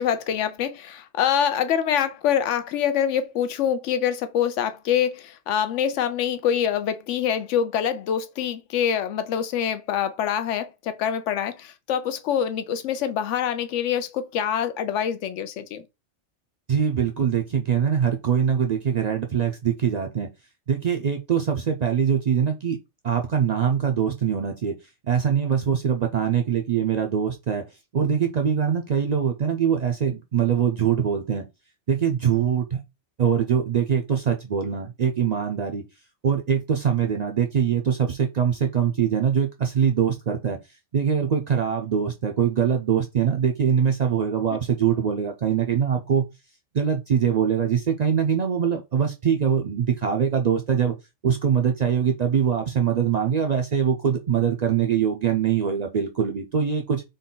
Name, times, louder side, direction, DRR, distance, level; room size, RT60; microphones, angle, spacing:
voice 1, 0.0-15.8, left 9 dB, 90° left, 0.9 m, -25 dB
voice 2, 16.7-20.3 20.7-22.8 23.0-24.7 25.1-27.6 27.9-31.4 31.9-32.8 33.2-35.8 36.2-40.6 40.9-46.3 46.7-51.0 51.2-57.0, right 8 dB, 55° right, 0.4 m, -23 dB
3.9 x 2.3 x 3.7 m
omnidirectional pair, 1.2 m